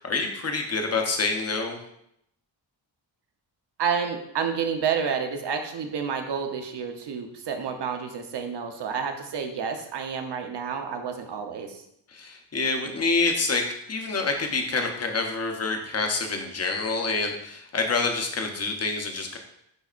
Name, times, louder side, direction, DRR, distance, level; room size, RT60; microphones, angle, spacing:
voice 1, 0.0-1.8 12.1-19.4, left 3 dB, 35° left, 3 dB, 0.8 m, -27 dB
voice 2, 3.8-11.8, right 6 dB, 65° right, 5 dB, 0.9 m, -29 dB
11.0 x 4.0 x 2.5 m, 0.75 s
wide cardioid pair, 175°, 45 cm